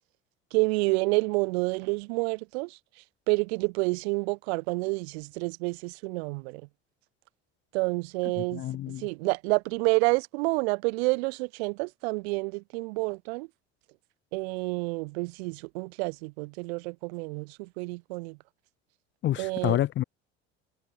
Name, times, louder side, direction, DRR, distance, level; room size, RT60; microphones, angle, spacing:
voice 1, 0.5-2.8 3.3-6.6 7.7-13.5 14.3-18.4 19.4-19.8, right 28 dB, 80° right, 0.5 m, -29 dB
voice 2, 8.4-9.1 19.2-20.0, left 13 dB, 40° left, 0.5 m, -28 dB
hypercardioid pair, 80°, 32 cm